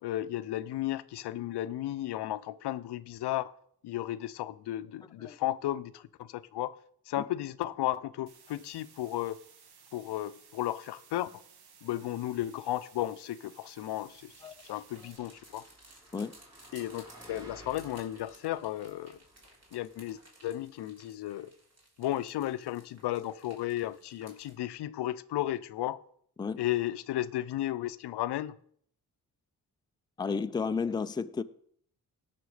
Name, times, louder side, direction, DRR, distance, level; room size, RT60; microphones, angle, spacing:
voice 1, 0.0-3.5 3.8-6.8 7.1-9.4 9.9-11.4 11.8-14.3 14.6-15.6 16.7-19.2 19.7-21.5 22.0-26.0 26.6-28.6, left 13 dB, 85° left, 0.6 m, -34 dB
sound 1, 8.3-15.2, right 6 dB, 75° right, 1.5 m, -58 dB
sound 2, 13.9-24.6, right 1 dB, 40° right, 3.2 m, -58 dB
Car passing by, 14.3-20.2, equal, 10° right, 5.8 m, -56 dB
voice 2, 30.2-31.4, left 5 dB, 10° left, 0.4 m, -32 dB
17.5 x 6.1 x 4.9 m
cardioid pair, 105°, 39 cm